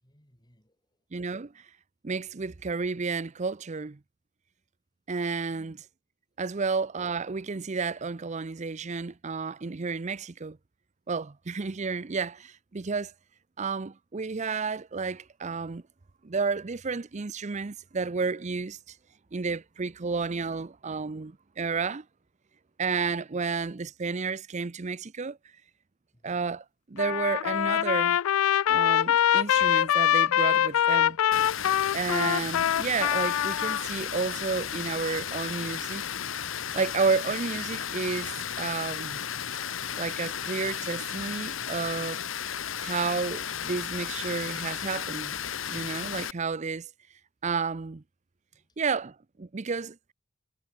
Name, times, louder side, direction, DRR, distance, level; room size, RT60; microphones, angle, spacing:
voice 1, 0.0-1.0 5.5-5.8 26.1-26.6 48.5-48.8, equal, 20° left, 6.4 m, -63 dB
voice 2, 1.1-1.6 2.0-4.0 5.1-5.7 6.4-10.6 11.1-13.1 13.6-15.8 16.2-19.0 19.3-22.0 22.8-25.4 26.2-28.2 28.7-31.2 31.9-36.2 36.7-39.2 39.9-42.2 42.8-45.3 45.7-46.9 47.4-48.0 48.8-50.0, right 4 dB, 35° right, 0.6 m, -31 dB
Trumpet, 27.0-33.8, left 10 dB, 85° left, 0.3 m, -24 dB
Water, 31.3-46.3, left 8 dB, 70° left, 1.3 m, -34 dB
head